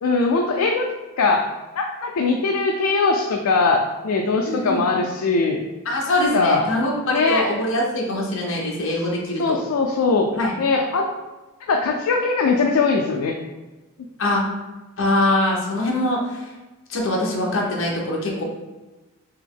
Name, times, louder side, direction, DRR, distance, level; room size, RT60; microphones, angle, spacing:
voice 1, 0.0-0.9 1.2-1.5 1.8-5.6 6.3-6.7 7.1-7.5 9.4-10.3 10.6-11.1 11.7-13.3, left 3 dB, 80° left, 1 dB, 0.4 m, -20 dB
voice 2, 4.5-4.8 5.8-9.6 10.3-10.5 14.2-14.4 15.0-16.4 16.9-18.4, left 1 dB, 60° left, -2 dB, 0.9 m, -23 dB
3.5 x 2.9 x 3.7 m, 1.1 s
head